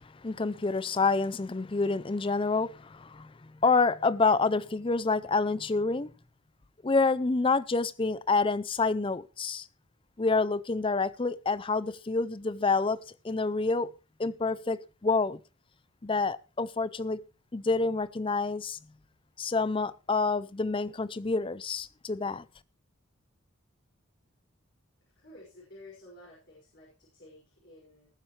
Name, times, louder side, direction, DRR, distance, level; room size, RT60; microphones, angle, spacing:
voice 1, 0.2-6.1 6.8-9.7 10.2-13.9 14.2-15.4 16.0-17.2 17.5-18.8 19.4-22.4, left 3 dB, 25° left, 0.5 m, -28 dB
voice 2, 25.2-28.1, left 1 dB, 55° left, 5.9 m, -52 dB
19.5 x 8.9 x 3.3 m
head